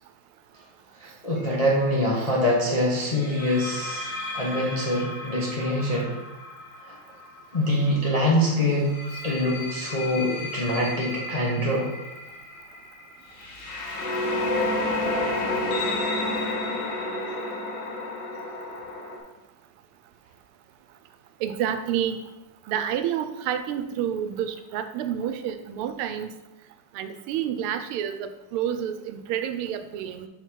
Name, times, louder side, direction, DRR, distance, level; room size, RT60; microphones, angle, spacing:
voice 1, 1.0-6.2 6.8-7.0 7.5-8.9 9.2-11.9, left 1 dB, 35° left, -4 dB, 0.5 m, -24 dB
sound 1, 1.4-1.6 3.1-7.9 8.7-19.2, left 2 dB, 60° left, 1.7 m, -31 dB
voice 2, 21.4-22.2 22.7-26.3 26.9-30.3, right 9 dB, 90° right, 9 dB, 1.5 m, -29 dB
5.9 x 4.1 x 4.5 m, 0.98 s
omnidirectional pair, 2.3 m